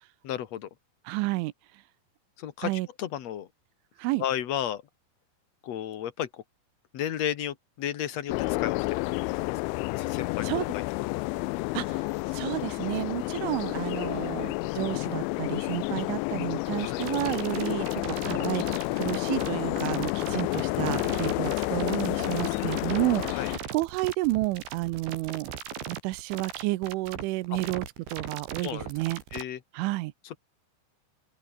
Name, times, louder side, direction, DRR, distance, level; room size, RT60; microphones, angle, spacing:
voice 1, 0.2-0.7 2.4-3.5 4.2-4.8 5.6-6.4 6.9-9.5 10.0-10.8 16.8-17.1 23.3-23.5 27.5-27.6 28.6-28.9 29.3-29.6 30.2-30.4, left 10 dB, 70° left, 1.6 m, -33 dB
voice 2, 1.1-1.5 2.6-2.9 4.0-4.2 10.4-10.7 11.7-12.1 12.3-18.6 19.0-25.5 25.9-27.8 28.1-29.2 29.7-30.1, right 20 dB, 90° right, 3.3 m, -31 dB
sound 1, 8.3-23.6, left 23 dB, 85° left, 3.0 m, -30 dB
sound 2, 17.0-29.4, right 8 dB, 70° right, 5.5 m, -38 dB
open air
omnidirectional pair, 5.4 m